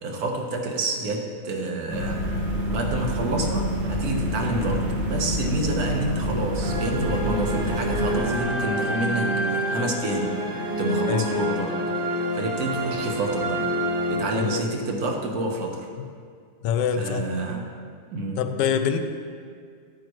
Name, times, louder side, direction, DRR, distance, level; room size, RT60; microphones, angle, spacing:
voice 1, 0.0-2.3 2.7-10.4 10.8-11.8 12.3-13.7 14.1-15.9 17.0-17.6 18.1-18.4, right 2 dB, 55° right, 2 dB, 1.4 m, -28 dB
sound 1, 1.9-8.2, equal, 85° right, 2.1 m, -27 dB
sound 2, 6.6-14.9, right 1 dB, 40° right, 0.8 m, -27 dB
voice 2, 14.3-14.6 16.0-16.1 16.6-17.2 18.4-19.0, left 8 dB, 75° left, 8 dB, 1.2 m, -25 dB
12.0 x 8.7 x 3.1 m, 2.1 s
omnidirectional pair, 2.0 m